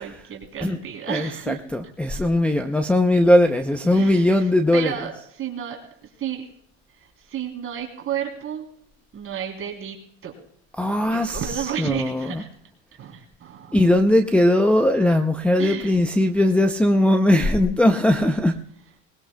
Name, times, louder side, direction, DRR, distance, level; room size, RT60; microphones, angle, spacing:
voice 1, 0.0-1.6 2.2-2.3 3.9-6.4 6.9-8.7 9.1-10.0 10.2-10.3 11.1-12.5 13.0-13.8 15.6-16.0, right 9 dB, 35° right, 3.3 m, -32 dB
voice 2, 1.1-4.9 10.8-12.4 13.7-18.6, left 1 dB, 5° left, 0.6 m, -19 dB
20.5 x 19.0 x 2.3 m
supercardioid pair, 125°, 39 cm